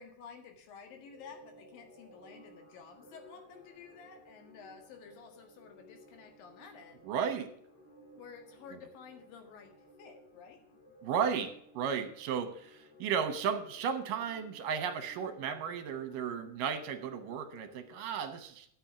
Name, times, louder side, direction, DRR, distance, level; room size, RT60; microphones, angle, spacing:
voice 1, 0.0-7.1 8.2-10.6, left 6 dB, 85° left, 5 dB, 3.5 m, -52 dB
sound 1, 0.8-18.0, equal, 45° left, 4.5 m, -58 dB
voice 2, 7.0-7.5 11.0-18.7, right 7 dB, 75° right, 9 dB, 2.7 m, -34 dB
10.5 x 7.8 x 5.8 m, 0.66 s
omnidirectional pair, 3.9 m